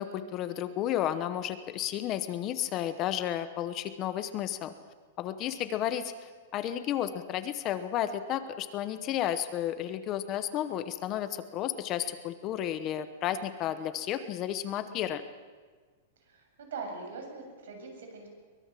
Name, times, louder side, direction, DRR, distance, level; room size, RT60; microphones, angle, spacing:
voice 1, 0.0-4.7 5.2-15.2, left 11 dB, 20° left, 11 dB, 0.9 m, -32 dB
voice 2, 16.3-18.3, right 4 dB, 75° right, 3 dB, 7.4 m, -42 dB
23.5 x 21.5 x 7.5 m, 1.5 s
supercardioid pair, 180°, 0 cm